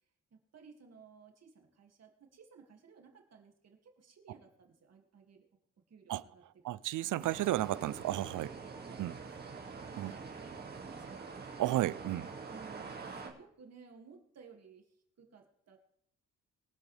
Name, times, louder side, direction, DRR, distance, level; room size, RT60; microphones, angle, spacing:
voice 1, 0.3-5.5 5.9-6.9 8.7-11.5 12.1-15.8, right 5 dB, 50° right, 2.4 m, -58 dB
voice 2, 6.6-8.5 9.0-9.1 10.0-10.1 11.6-12.3, right 14 dB, 70° right, 0.6 m, -33 dB
sound 1, 7.2-13.3, right 4 dB, 30° right, 2.4 m, -45 dB
23.0 x 8.5 x 3.4 m
cardioid pair, 115°, 32 cm